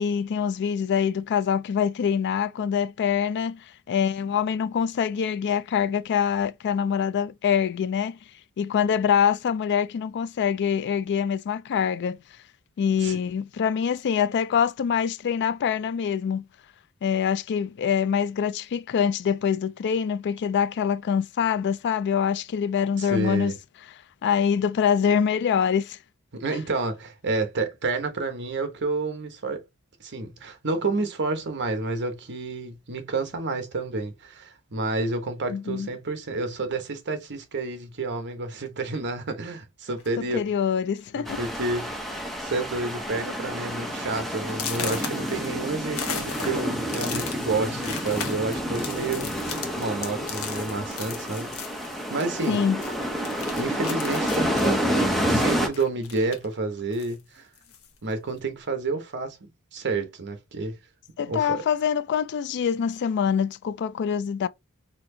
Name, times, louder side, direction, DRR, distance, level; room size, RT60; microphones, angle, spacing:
voice 1, 0.0-8.2 8.6-12.2 12.8-16.4 17.0-23.5 24.2-26.0 26.5-26.6 35.5-35.9 40.2-41.4 52.5-52.8 61.2-64.5, left 7 dB, 50° left, 0.3 m, -25 dB
voice 2, 23.0-23.5 26.3-29.6 30.0-40.4 41.1-49.4 49.8-52.6 53.6-57.5 58.0-60.8 61.3-61.6, right 3 dB, 55° right, 1.0 m, -30 dB
sound 1, 40.0-40.3 41.1-41.2 41.6-41.9 42.2-42.6 43.0-43.1 43.6-43.7 44.5-52.6 52.8-56.5 56.9-57.9, left 6 dB, 75° left, 0.9 m, -37 dB
sound 2, 41.2-55.7, equal, ahead, 0.8 m, -29 dB
4.2 x 2.8 x 2.6 m
head